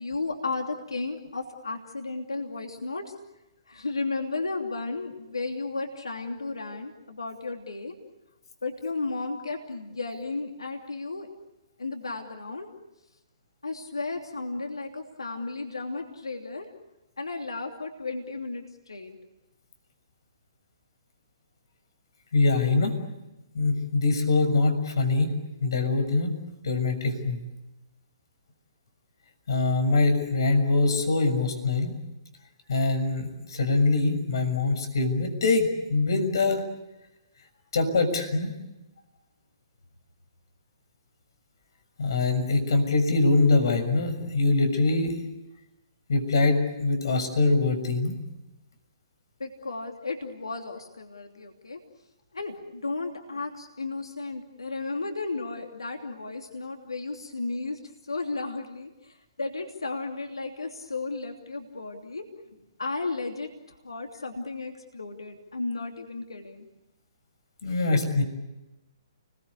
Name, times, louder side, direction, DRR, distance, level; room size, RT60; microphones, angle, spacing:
voice 1, 0.0-3.1 3.7-7.9 8.6-11.3 11.8-12.7 13.6-16.7 17.2-19.2 49.4-51.8 52.3-62.2 62.8-66.7, left 3 dB, 80° left, 3 dB, 2.9 m, -34 dB
voice 2, 22.3-23.0 23.5-25.3 25.6-26.4 26.6-27.4 29.5-31.9 32.7-36.6 37.7-38.5 42.0-45.1 46.1-48.2 67.6-68.2, left 3 dB, 60° left, 7 dB, 6.7 m, -23 dB
30.0 x 22.0 x 8.4 m, 0.98 s
figure-of-eight pair, 130°, 3 cm